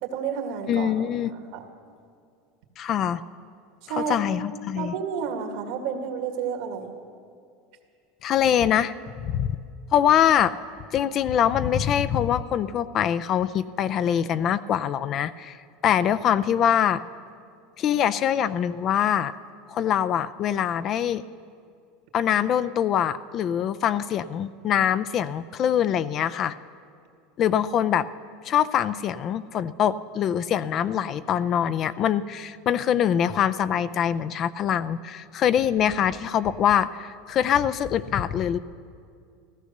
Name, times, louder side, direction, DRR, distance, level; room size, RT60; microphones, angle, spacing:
voice 1, 0.0-1.1 1.5-1.7 3.8-4.2 4.7-6.9, right 7 dB, 70° right, 4 dB, 2.0 m, -30 dB
voice 2, 0.7-1.3 2.8-3.2 4.0-4.9 8.2-8.9 9.2-9.5 9.9-10.5 10.9-17.0 17.8-19.4 19.7-21.2 22.1-26.6 27.4-28.1 28.4-38.6, left 9 dB, 40° left, 14 dB, 0.5 m, -24 dB
15.0 x 14.0 x 6.7 m, 2.3 s
supercardioid pair, 125°, 0 cm